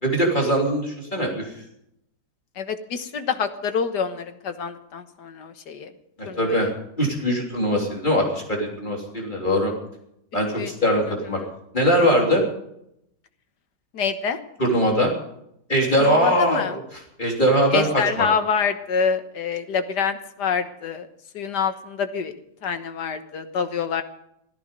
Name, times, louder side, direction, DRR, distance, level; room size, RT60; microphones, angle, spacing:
voice 1, 0.0-1.5 6.2-6.7 7.0-9.7 10.3-11.4 11.7-12.4 14.6-15.1 15.7-16.7 17.2-18.3, equal, 30° left, -1 dB, 3.4 m, -21 dB
voice 2, 2.6-5.9 6.3-6.7 10.6-10.7 11.1-11.5 13.9-14.4 16.0-16.7 17.7-21.1 21.3-22.3 22.6-24.0, left 6 dB, 85° left, 9 dB, 1.9 m, -26 dB
17.0 x 14.0 x 5.2 m, 0.77 s
omnidirectional pair, 1.7 m